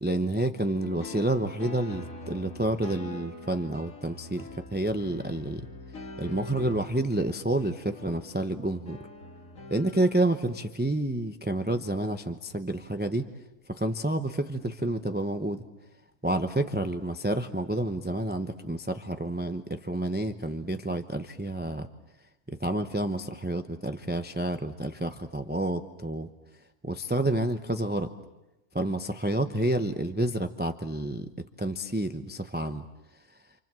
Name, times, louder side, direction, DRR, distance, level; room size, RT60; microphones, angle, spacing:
voice 1, 0.0-5.6 6.2-9.0 9.7-13.3 13.8-15.6 16.2-21.9 22.6-26.3 26.8-28.1 28.7-31.3 31.6-32.8, right 1 dB, 10° right, 7 dB, 0.7 m, -29 dB
sound 1, 0.8-10.6, left 2 dB, 65° left, 2.9 m, -44 dB
28.5 x 27.5 x 7.6 m, 0.97 s
omnidirectional pair, 1.5 m